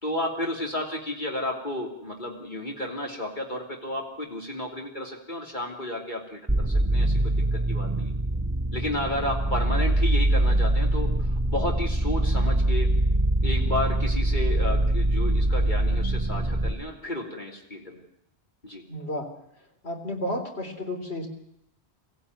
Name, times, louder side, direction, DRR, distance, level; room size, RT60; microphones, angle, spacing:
voice 1, 0.0-8.1 8.7-12.9 13.4-18.0 18.6-18.8, left 1 dB, 45° left, 0 dB, 3.2 m, -32 dB
sound 1, 6.5-16.7, right 1 dB, 10° right, 3.3 m, -23 dB
voice 2, 18.9-19.3 19.8-21.3, left 1 dB, 75° left, 3 dB, 3.8 m, -32 dB
24.0 x 15.5 x 9.5 m, 0.78 s
omnidirectional pair, 1.1 m